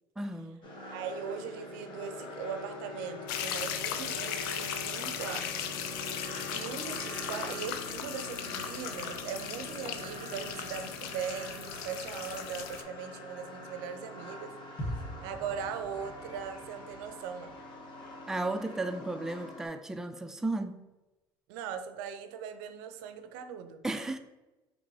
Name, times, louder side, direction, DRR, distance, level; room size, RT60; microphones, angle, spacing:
voice 1, 0.2-0.6 18.3-20.8 23.8-24.2, right 2 dB, 5° right, 0.3 m, -34 dB
sound 1, 0.6-19.7, left 2 dB, 45° left, 1.1 m, -44 dB
voice 2, 0.9-5.7 6.5-14.5 14.8-14.9 15.2-17.6 21.5-23.8, right 7 dB, 80° right, 0.5 m, -40 dB
sound 2, 3.3-12.8, left 9 dB, 80° left, 0.4 m, -38 dB
sound 3, 14.8-18.7 19.0-19.1, equal, 20° left, 1.0 m, -43 dB
5.2 x 3.0 x 2.7 m
supercardioid pair, 80°, 12 cm